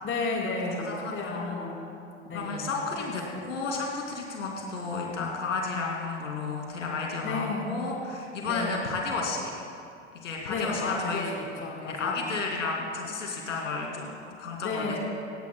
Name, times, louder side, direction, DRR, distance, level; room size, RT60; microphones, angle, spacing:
voice 1, 0.0-2.0 2.2-3.4 7.2-7.9 8.4-8.8 10.5-12.3 14.6-15.0, left 3 dB, 35° left, -1 dB, 3.8 m, -33 dB
voice 2, 0.9-1.7 2.3-9.5 10.2-11.3 11.8-15.0, left 4 dB, 80° left, -1 dB, 2.5 m, -32 dB
21.0 x 18.0 x 2.2 m, 2.4 s
figure-of-eight pair, 75°, 37 cm